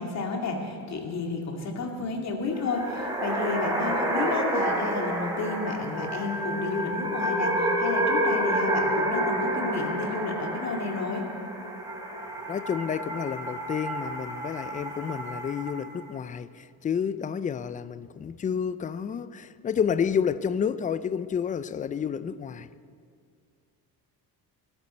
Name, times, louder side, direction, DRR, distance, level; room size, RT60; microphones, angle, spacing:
voice 1, 0.0-11.2, left 3 dB, 45° left, 2.5 m, -31 dB
sound 1, 2.5-15.9, right 1 dB, 10° right, 3.3 m, -29 dB
voice 2, 12.5-22.7, left 7 dB, 20° left, 0.4 m, -30 dB
22.0 x 12.5 x 4.4 m
cardioid pair, 125°, 37 cm